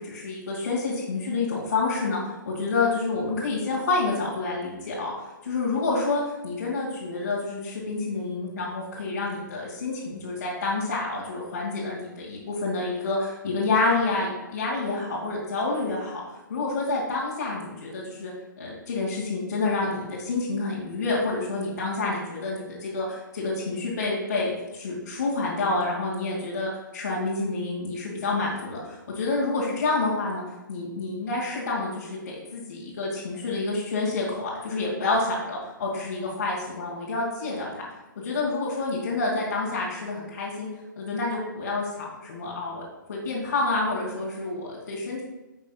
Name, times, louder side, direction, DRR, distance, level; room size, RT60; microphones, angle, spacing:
voice 1, 0.0-5.1 5.4-16.2 16.5-30.4 30.7-37.9 38.2-40.7 41.0-42.8 43.1-45.2, left 3 dB, 60° left, -8 dB, 2.3 m, -28 dB
10.5 x 6.0 x 2.4 m, 1.1 s
figure-of-eight pair, 130°, 11 cm